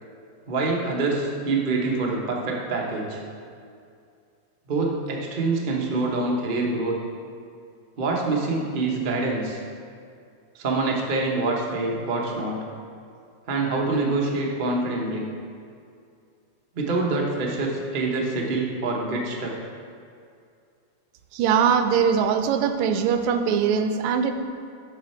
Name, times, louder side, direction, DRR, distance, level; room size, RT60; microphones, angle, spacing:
voice 1, 0.5-3.2 4.7-7.0 8.0-9.6 10.5-12.6 13.5-15.3 16.7-19.6, right 3 dB, 55° right, -1 dB, 0.5 m, -25 dB
voice 2, 21.3-24.3, right 7 dB, 90° right, 7 dB, 1.5 m, -21 dB
6.9 x 6.3 x 4.3 m, 2.3 s
omnidirectional pair, 2.4 m